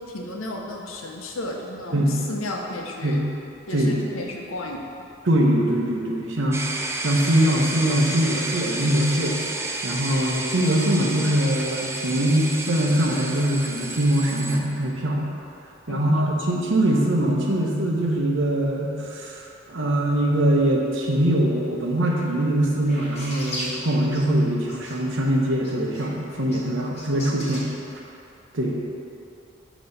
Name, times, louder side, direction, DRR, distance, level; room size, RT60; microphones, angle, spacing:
voice 1, 0.0-3.2 3.7-4.9 15.9-16.1, left 1 dB, 90° left, 0 dB, 0.7 m, -33 dB
voice 2, 1.9-2.2 3.0-3.2 3.7-3.9 5.3-6.7 7.0-9.4 9.8-15.3 15.9-19.4 19.7-27.7 28.5-28.8, right 1 dB, 65° right, -1 dB, 0.9 m, -22 dB
sound 1, 6.5-14.6, right 2 dB, 15° right, 0.4 m, -31 dB
sound 2, 21.8-22.2 22.9-24.4 24.7-25.2 25.6-27.6, left 1 dB, 35° left, 1.3 m, -37 dB
6.7 x 3.0 x 5.5 m, 2.8 s
head